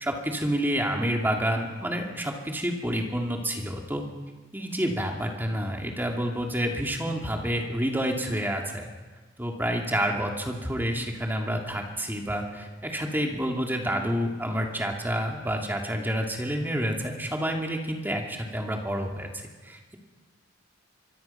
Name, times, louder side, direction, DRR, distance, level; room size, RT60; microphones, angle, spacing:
voice 1, 0.0-4.0 4.5-8.9 9.4-20.0, equal, 10° right, 1 dB, 2.7 m, -29 dB
25.0 x 23.0 x 5.9 m, 1.3 s
head